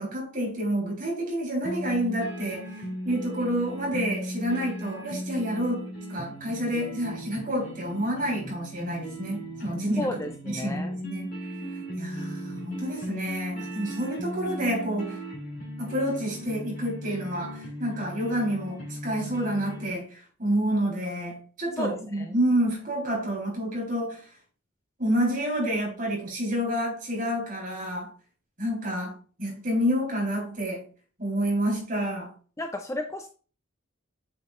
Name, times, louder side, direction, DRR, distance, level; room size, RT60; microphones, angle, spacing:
voice 1, 0.0-2.7 3.0-10.2 10.4-11.3 12.0-15.2 15.8-24.3 25.0-28.1 28.6-30.9 31.2-32.3, equal, 40° right, 3.8 m, -29 dB
sound 1, 1.6-19.9, equal, 45° left, 2.7 m, -37 dB
voice 2, 10.0-10.9 21.8-22.3 32.6-33.3, left 1 dB, 15° left, 0.5 m, -33 dB
8.6 x 6.1 x 2.5 m
head